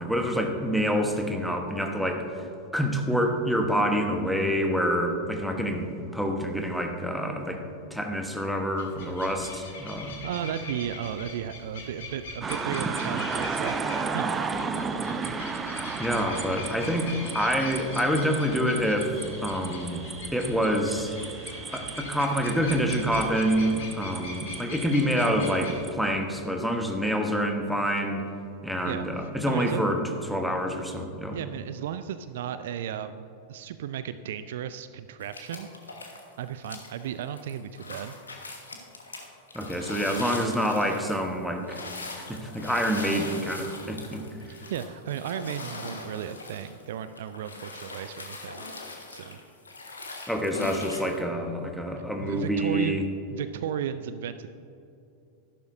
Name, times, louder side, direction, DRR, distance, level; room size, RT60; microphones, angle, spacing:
voice 1, 0.0-2.4 2.7-7.6 7.9-10.2 16.0-20.0 20.3-21.1 21.7-28.2 28.6-30.0 30.3-31.4 39.5-41.8 42.2-44.2 50.3-53.0, equal, ahead, 3 dB, 1.2 m, -27 dB
sound 1, 8.8-25.8, left 3 dB, 55° left, 2.3 m, -42 dB
voice 2, 10.2-13.8 14.1-14.3 28.8-29.8 31.3-35.7 36.4-38.1 44.7-48.6 49.1-49.4 52.2-53.0 53.3-54.5, right 9 dB, 55° right, 12 dB, 0.3 m, -34 dB
sound 2, 12.4-25.9, right 4 dB, 20° right, 0.6 m, -34 dB
sound 3, 35.2-36.3 36.6-51.2, left 2 dB, 75° left, 1.4 m, -41 dB
13.5 x 11.5 x 2.7 m, 2.7 s
figure-of-eight pair, 90°, 0 cm